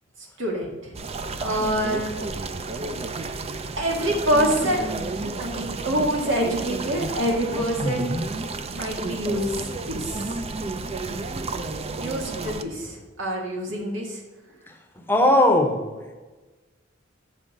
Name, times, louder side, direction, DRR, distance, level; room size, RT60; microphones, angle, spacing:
voice 1, 0.4-1.0 1.4-2.1 3.8-4.9 5.4-8.1 8.7-9.6 9.9-10.5 11.9-14.2, equal, 85° right, 0 dB, 1.9 m, -26 dB
sound 1, 0.9-12.6, right 3 dB, 35° right, 0.4 m, -31 dB
voice 2, 7.8-8.2 14.7-16.1, left 1 dB, 10° left, 4 dB, 0.8 m, -21 dB
7.3 x 4.5 x 6.5 m, 1.2 s
head